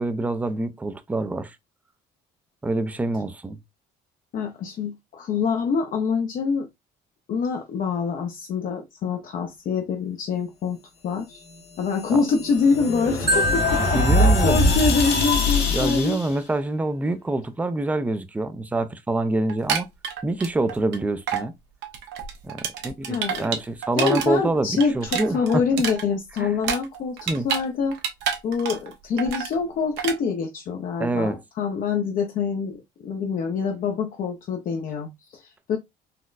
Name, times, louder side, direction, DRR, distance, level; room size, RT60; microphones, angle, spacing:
voice 1, 0.0-1.6 2.6-3.6 12.1-12.2 13.7-14.6 15.7-19.9 20.2-21.5 22.4-25.6 26.4-26.5 27.3-27.5 31.0-31.4, right 2 dB, 10° right, 0.4 m, -26 dB
voice 2, 4.3-6.7 7.3-11.4 11.8-16.2 23.0-23.6 24.0-28.0 28.4-35.8, left 5 dB, 50° left, 0.6 m, -25 dB
sound 1, 11.8-16.3, left 1 dB, 70° left, 1.3 m, -22 dB
Marimba xylophone, 13.3-15.3, right 1 dB, 25° right, 0.8 m, -27 dB
sound 2, 19.5-21.0 21.3-21.5 21.8-24.3 24.6-27.7 27.9-28.9 29.2-29.5 30.0-30.2, right 8 dB, 80° right, 0.9 m, -28 dB
4.0 x 2.1 x 2.4 m
cardioid pair, 110°, 18 cm